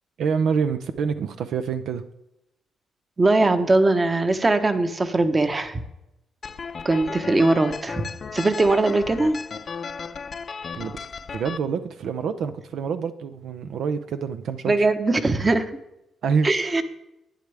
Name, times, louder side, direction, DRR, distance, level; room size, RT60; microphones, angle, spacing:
voice 1, 0.2-2.0 10.7-11.0 11.3-14.9 16.2-16.5, right 6 dB, 75° right, 10 dB, 0.5 m, -26 dB
voice 2, 3.2-5.8 6.8-8.0 8.3-9.4 14.7-15.7 16.4-16.8, right 2 dB, 25° right, 9 dB, 1.0 m, -20 dB
sound 1, 6.4-11.6, left 5 dB, 45° left, 0.6 m, -35 dB
11.5 x 9.5 x 3.4 m, 0.88 s
cardioid pair, 80°, 0 cm